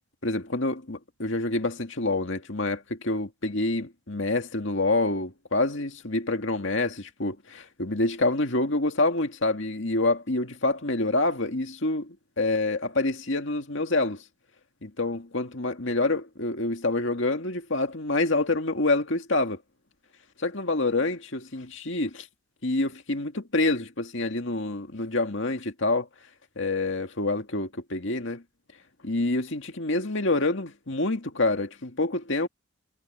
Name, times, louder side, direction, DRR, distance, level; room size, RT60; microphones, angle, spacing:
voice 1, 0.2-14.2 14.8-19.6 20.4-22.3 22.6-26.1 26.6-28.4 29.0-32.5, left 2 dB, 60° left, 2.2 m, -27 dB
head